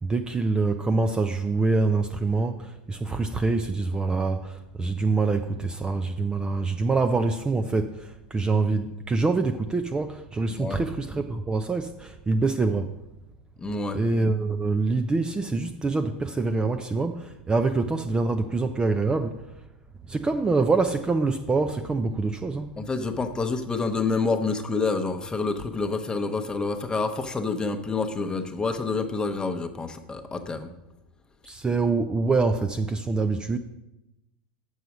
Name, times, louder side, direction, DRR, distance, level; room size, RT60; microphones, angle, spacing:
voice 1, 0.0-12.9 13.9-19.4 20.1-22.7 31.5-33.6, right 3 dB, 15° right, 0.5 m, -25 dB
voice 2, 13.6-14.0 22.8-30.7, left 4 dB, 15° left, 0.9 m, -28 dB
6.8 x 6.4 x 6.0 m
hypercardioid pair, 95°, 5 cm